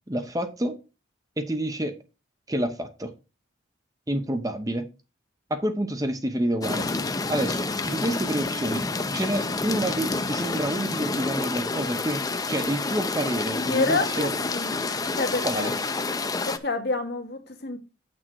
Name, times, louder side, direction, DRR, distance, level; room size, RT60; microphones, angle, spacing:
voice 1, 0.1-0.7 1.4-1.9 2.5-3.1 4.1-4.9 5.5-6.9 7.3-12.2 12.5-14.3 15.4-15.7, right 1 dB, 20° right, 0.8 m, -28 dB
sound 1, 6.6-16.6, left 3 dB, 20° left, 0.5 m, -28 dB
voice 2, 13.7-14.8 15.2-15.8 16.5-17.8, left 3 dB, 55° left, 1.6 m, -28 dB
7.9 x 6.2 x 4.5 m
head